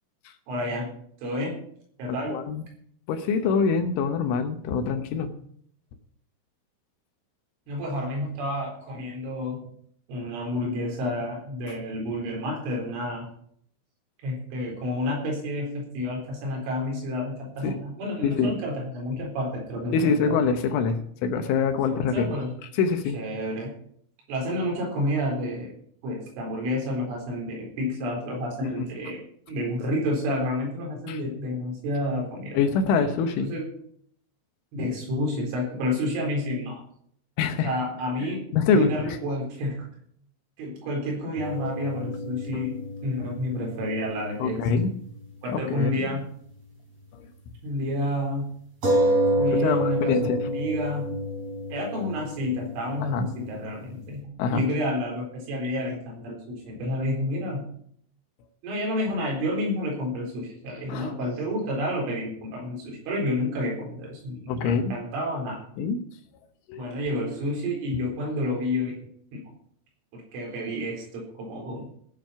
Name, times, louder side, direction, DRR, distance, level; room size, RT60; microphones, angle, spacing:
voice 1, 0.5-0.9 1.2-1.6 2.0-2.4 7.7-9.7 10.1-13.3 14.2-20.4 22.1-22.5 23.1-23.7 24.3-25.7 26.0-29.2 29.5-32.6 33.4-33.7 34.7-36.8 37.6-38.4 38.7-39.9 40.6-44.6 45.4-46.3 47.6-48.5 49.4-51.1 51.7-57.7 58.6-65.6 66.8-69.0 69.3-69.4 70.1-71.9, left 1 dB, 70° right, -1 dB, 6.4 m, -30 dB
voice 2, 2.3-2.6 3.1-5.3 17.6-17.8 18.2-18.5 19.9-22.3 22.8-23.2 28.6-28.9 31.1-31.2 32.5-33.5 37.4-37.7 38.5-39.2 44.4-44.9 45.5-45.9 47.1-47.3 49.5-50.4 53.1-53.3 54.4-54.6 60.9-61.1 64.5-64.9 65.8-66.0 66.7-66.8, left 5 dB, 75° left, 7 dB, 3.3 m, -25 dB
sound 1, 41.4-45.2 45.5-45.6 48.8-54.0, right 1 dB, 30° right, 5.4 m, -29 dB
17.0 x 8.0 x 5.7 m, 0.66 s
omnidirectional pair, 6.0 m